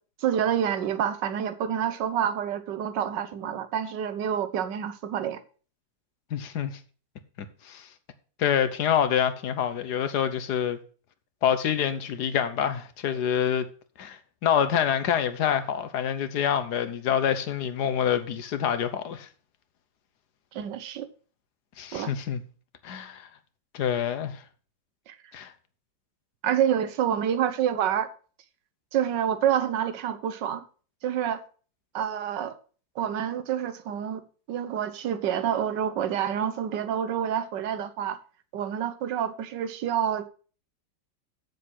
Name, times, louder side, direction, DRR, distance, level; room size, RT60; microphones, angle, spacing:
voice 1, 0.2-5.4 20.5-21.1 21.9-22.1 25.1-25.2 26.4-28.1 28.9-30.6 31.0-31.4 31.9-32.5 33.0-38.2 38.5-40.3, right 9 dB, 90° right, 1.5 m, -28 dB
voice 2, 6.3-6.8 7.6-7.9 8.4-10.8 11.4-13.7 14.0-19.3 21.8-22.4 22.8-23.3 23.7-24.4 25.3-25.5, left 8 dB, 70° left, 1.5 m, -26 dB
7.8 x 7.1 x 6.2 m
omnidirectional pair, 1.8 m